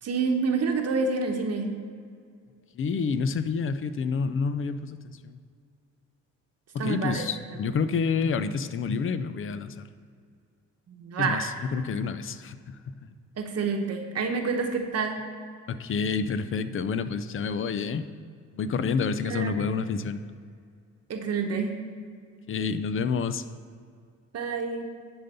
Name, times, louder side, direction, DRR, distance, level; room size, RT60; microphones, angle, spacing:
voice 1, 0.0-1.7 6.8-7.3 10.9-11.5 13.4-15.2 19.2-19.8 21.1-21.7 24.3-24.9, right 4 dB, 55° right, 3 dB, 1.0 m, -28 dB
voice 2, 2.7-5.4 6.7-9.9 11.2-13.1 15.7-18.1 18.5-20.2 22.5-23.4, left 5 dB, 45° left, 12 dB, 0.5 m, -29 dB
10.5 x 4.0 x 6.7 m, 2.1 s
cardioid pair, 90°, 30 cm